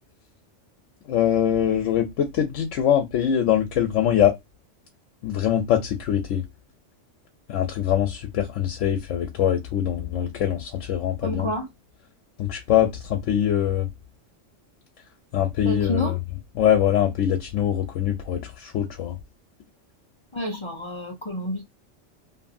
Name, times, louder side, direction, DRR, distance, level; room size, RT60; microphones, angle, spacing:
voice 1, 1.1-4.4 5.2-6.4 7.5-11.5 12.4-13.9 15.3-16.1 16.6-19.2, left 10 dB, 85° left, 0.9 m, -23 dB
voice 2, 11.2-11.7 15.6-16.2 20.3-21.6, equal, 50° left, 0.3 m, -29 dB
2.6 x 2.6 x 2.5 m
omnidirectional pair, 1.3 m